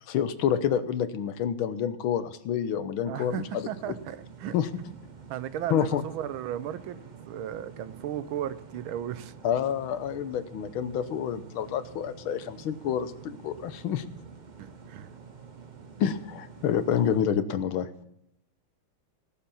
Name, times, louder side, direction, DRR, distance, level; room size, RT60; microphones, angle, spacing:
voice 1, 0.1-3.7 4.5-4.7 5.7-6.0 9.4-14.0 16.0-17.9, left 9 dB, 85° left, 1.7 m, -28 dB
voice 2, 3.1-4.5 5.3-7.0 7.2-9.3 14.6-15.1, right 11 dB, 85° right, 1.5 m, -35 dB
sound 1, 3.3-17.2, right 5 dB, 55° right, 0.5 m, -48 dB
18.5 x 7.0 x 5.6 m
omnidirectional pair, 2.2 m